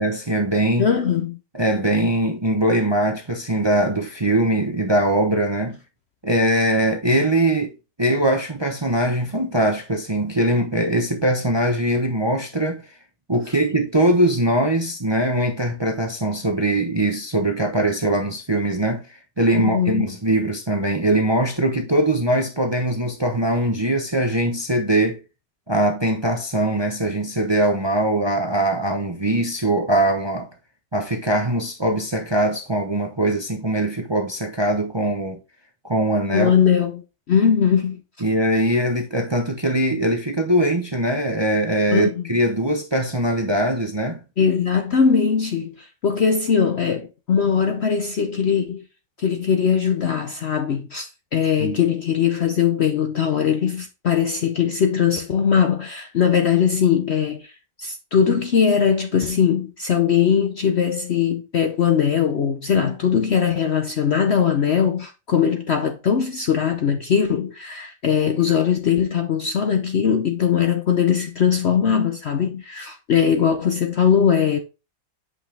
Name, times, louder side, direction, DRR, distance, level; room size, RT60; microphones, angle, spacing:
voice 1, 0.0-0.9 1.5-5.8 6.2-7.7 8.0-12.8 13.3-25.2 25.7-30.5 30.9-35.4 35.8-36.5 38.2-44.2 51.6-51.8, right 1 dB, 20° right, 0.7 m, -21 dB
voice 2, 0.8-1.4 19.5-20.1 36.3-38.0 41.9-42.2 44.4-48.8 49.2-57.5 57.8-74.6, left 7 dB, 55° left, 0.8 m, -20 dB
8.1 x 5.5 x 3.4 m
omnidirectional pair, 1.8 m